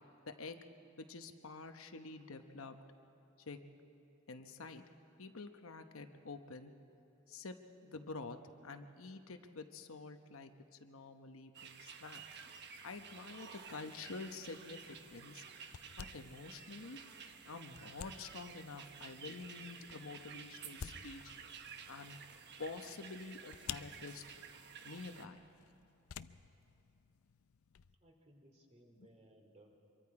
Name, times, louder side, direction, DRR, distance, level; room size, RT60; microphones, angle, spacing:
voice 1, 0.2-0.6 1.0-2.8 3.5-3.6 4.3-4.8 5.2-6.7 7.3-7.5 7.8-10.5 10.8-12.2 12.8-15.4 16.0-17.0 17.4-21.2 21.9-22.2 22.6-24.2 24.8-25.4, left 3 dB, 70° left, 7 dB, 1.0 m, -48 dB
sound 1, 11.5-25.3, right 6 dB, 55° right, 1.1 m, -53 dB
sound 2, 14.4-28.0, left 8 dB, 90° left, 0.5 m, -54 dB
voice 2, 28.0-29.8, right 1 dB, 30° right, 2 dB, 2.6 m, -63 dB
25.5 x 23.0 x 4.8 m, 2.7 s
head